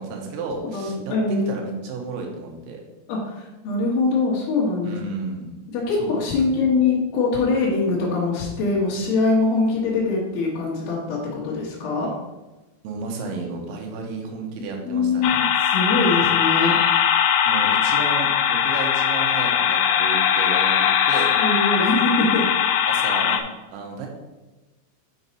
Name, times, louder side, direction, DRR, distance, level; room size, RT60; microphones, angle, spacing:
voice 1, 0.0-2.8 4.8-5.5 6.0-6.7 12.8-15.4 17.5-21.3 22.9-23.4 23.7-24.1, right 4 dB, 85° right, 1 dB, 3.8 m, -32 dB
voice 2, 0.6-1.5 3.1-4.9 5.7-12.1 14.8-16.8 21.4-22.5, left 3 dB, 65° left, -6 dB, 2.6 m, -23 dB
sound 1, 15.2-23.4, left 9 dB, 85° left, 2.6 m, -20 dB
7.7 x 5.5 x 4.1 m, 1.1 s
omnidirectional pair, 5.8 m